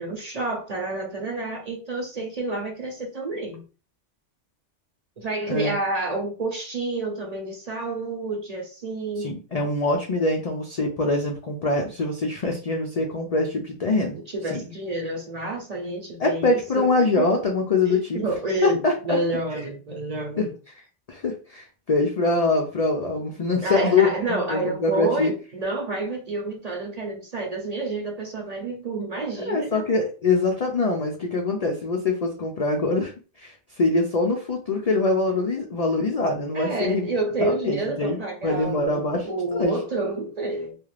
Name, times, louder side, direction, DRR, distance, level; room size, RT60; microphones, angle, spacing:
voice 1, 0.0-3.6 5.2-9.3 14.3-17.3 17.9-20.5 23.6-29.9 36.5-40.8, right 2 dB, 40° right, 0 dB, 0.7 m, -29 dB
voice 2, 9.2-14.2 14.5-14.6 16.2-18.2 18.6-19.6 20.4-20.5 21.1-25.3 29.4-37.1 37.4-39.7, left 3 dB, 65° left, 1 dB, 0.3 m, -24 dB
2.4 x 2.4 x 3.2 m, 0.35 s
omnidirectional pair, 1.2 m